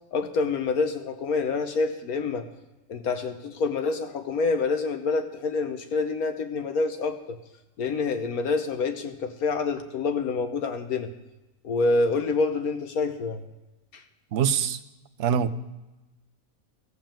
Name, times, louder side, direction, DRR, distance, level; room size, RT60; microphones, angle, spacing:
voice 1, 0.1-2.4 2.9-7.4 7.8-11.1 11.6-13.4 13.9-14.0, left 4 dB, 65° left, 7 dB, 1.4 m, -27 dB
voice 2, 14.3-14.8 15.2-15.5, right 8 dB, 60° right, 11 dB, 0.8 m, -24 dB
14.5 x 7.0 x 7.5 m, 1.0 s
omnidirectional pair, 1.7 m